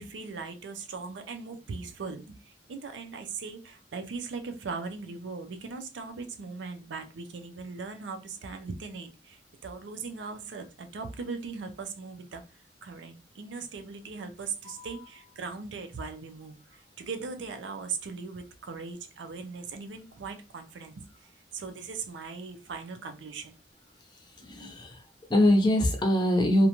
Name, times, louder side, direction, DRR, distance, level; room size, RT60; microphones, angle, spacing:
voice 1, 0.0-12.4 12.8-21.1 21.5-23.5, right 4 dB, 85° right, 0.4 m, -39 dB
voice 2, 14.6-15.0 24.1-26.7, left 1 dB, 25° left, 0.5 m, -24 dB
2.5 x 2.1 x 2.8 m
head